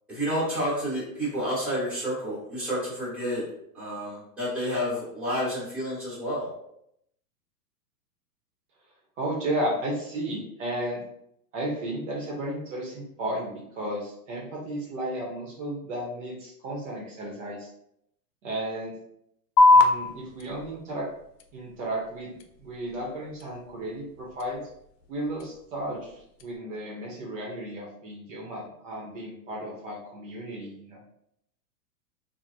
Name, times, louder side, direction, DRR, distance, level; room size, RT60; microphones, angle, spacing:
voice 1, 0.1-3.4 3.7-6.5, equal, ahead, -10 dB, 1.2 m, -30 dB
voice 2, 9.2-11.0 11.5-17.7 18.4-18.9 19.7-21.1 21.5-22.3 22.6-24.6 25.1-31.0, right 1 dB, 50° right, -2 dB, 0.8 m, -33 dB
sound 1, 19.6-26.6, left 3 dB, 90° left, 0.6 m, -26 dB
3.1 x 2.1 x 2.5 m, 0.76 s
hypercardioid pair, 145°, 48 cm